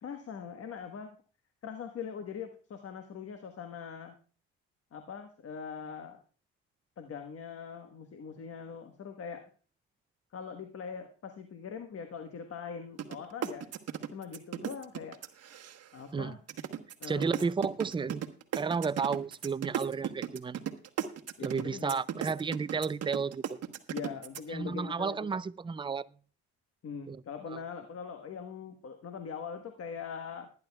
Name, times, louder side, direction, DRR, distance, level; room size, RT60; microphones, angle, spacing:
voice 1, 0.0-1.2 1.6-4.1 4.9-6.2 7.0-9.5 10.3-13.7 14.1-15.2 15.9-16.4 17.0-17.5 21.4-21.9 23.9-25.3 26.8-30.5, left 6 dB, 50° left, 1.4 m, -42 dB
sound 1, 13.0-13.2 13.4-16.0 16.5-24.4, right 9 dB, 50° right, 1.2 m, -35 dB
voice 2, 17.1-18.2 18.5-20.6 21.4-23.4 24.5-26.1 27.1-27.2, right 5 dB, 15° right, 0.4 m, -32 dB
19.5 x 10.5 x 2.3 m
supercardioid pair, 70°, 32 cm